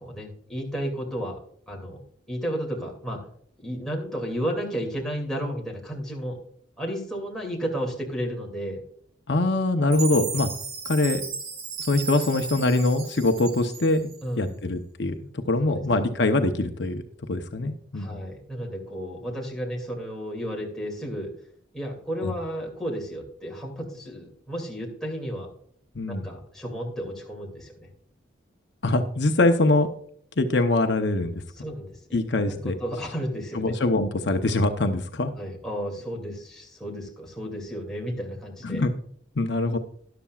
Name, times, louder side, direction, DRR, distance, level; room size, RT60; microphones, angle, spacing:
voice 1, 0.0-1.4 1.7-3.2 3.6-6.4 6.8-8.8 14.2-14.6 15.6-15.8 17.9-21.3 21.7-25.5 26.1-27.9 31.6-32.2 32.5-33.8 35.3-38.8, equal, 5° left, -2 dB, 2.5 m, -33 dB
voice 2, 9.3-10.5 10.8-11.2 11.9-14.1 14.4-17.0 17.3-18.2 22.2-22.3 25.9-26.3 28.8-29.9 30.4-31.4 32.1-32.8 33.5-35.3 38.6-38.9 39.4-39.8, left 2 dB, 60° left, 6 dB, 0.8 m, -23 dB
Chime, 9.9-14.2, right 5 dB, 90° right, 2.4 m, -35 dB
13.0 x 11.5 x 2.4 m, 0.64 s
head